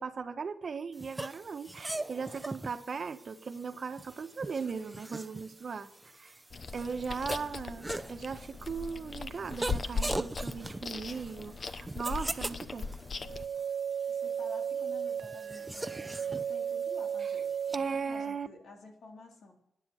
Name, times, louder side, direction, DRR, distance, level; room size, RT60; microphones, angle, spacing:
voice 1, 0.0-6.4 6.7-12.9 17.2-17.3 17.7-18.5, right 5 dB, 55° right, 8 dB, 1.2 m, -38 dB
sound 1, 1.0-17.8, right 2 dB, 15° right, 0.7 m, -41 dB
Chewing mastication, 6.5-13.5, left 4 dB, 50° left, 0.9 m, -39 dB
sound 2, 13.2-18.2, right 7 dB, 75° right, 0.7 m, -35 dB
voice 2, 14.1-19.5, left 3 dB, 80° left, 1 dB, 3.6 m, -50 dB
12.5 x 9.8 x 6.4 m, 0.81 s
cardioid pair, 70°, 0 cm